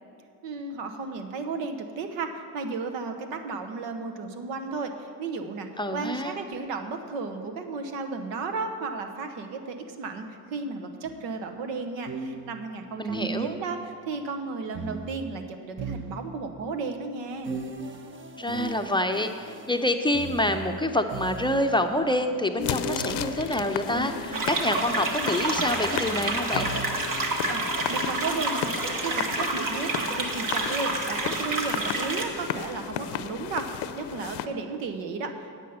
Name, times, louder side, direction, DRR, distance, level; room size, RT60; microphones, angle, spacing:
voice 1, 0.4-17.5 27.5-28.7 29.0-35.5, right 4 dB, 80° right, 6 dB, 1.0 m, -34 dB
voice 2, 5.8-6.3 13.0-13.5 18.4-26.7, left 1 dB, 10° left, 5 dB, 0.6 m, -27 dB
sound 1, 11.0-11.2 12.1-13.9 14.7-16.7 17.4-22.0 22.8-27.3, right 4 dB, 25° right, 0.8 m, -38 dB
sound 2, 22.6-34.5, left 10 dB, 65° left, 0.7 m, -34 dB
sound 3, 24.3-32.3, right 2 dB, 50° right, 1.4 m, -29 dB
9.1 x 8.4 x 5.6 m, 2.4 s
supercardioid pair, 65°, 44 cm